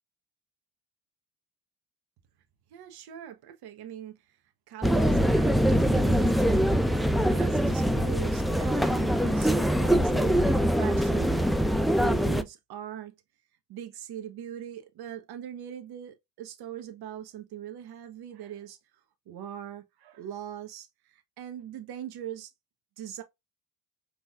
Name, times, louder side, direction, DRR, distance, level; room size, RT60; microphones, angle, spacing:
voice 1, 2.7-4.2 4.7-13.1 13.7-18.8 19.3-20.9 21.4-22.5 23.0-23.2, right 10 dB, 65° right, 1.2 m, -41 dB
sound 1, 4.8-12.4, equal, ahead, 0.5 m, -23 dB
5.4 x 3.4 x 2.4 m
supercardioid pair, 75°, 41 cm